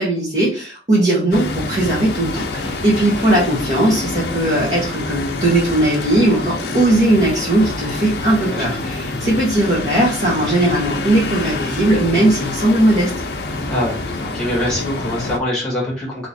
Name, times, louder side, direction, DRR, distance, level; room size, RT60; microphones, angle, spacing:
voice 1, 0.0-13.1, right 1 dB, 40° right, -7 dB, 1.3 m, -18 dB
sound 1, 1.3-15.4, left 2 dB, 65° left, 0.6 m, -26 dB
voice 2, 13.7-16.3, left 1 dB, 5° left, -4 dB, 1.5 m, -24 dB
3.0 x 3.0 x 4.0 m, 0.38 s
head